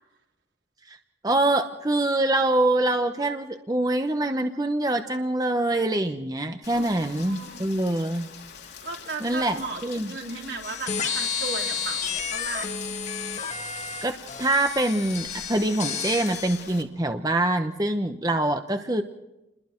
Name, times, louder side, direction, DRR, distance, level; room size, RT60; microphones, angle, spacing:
voice 1, 1.2-8.3 9.2-10.1 14.0-19.0, right 1 dB, 20° right, 6 dB, 0.9 m, -25 dB
Rain, 6.6-16.8, left 7 dB, 65° left, 2.6 m, -44 dB
voice 2, 6.7-7.7 8.8-9.8 10.1-12.8, right 3 dB, 80° right, 1 dB, 3.8 m, -36 dB
sound 1, 10.6-16.6, left 6 dB, 40° left, 1.6 m, -31 dB
29.0 x 21.5 x 4.5 m, 0.95 s
head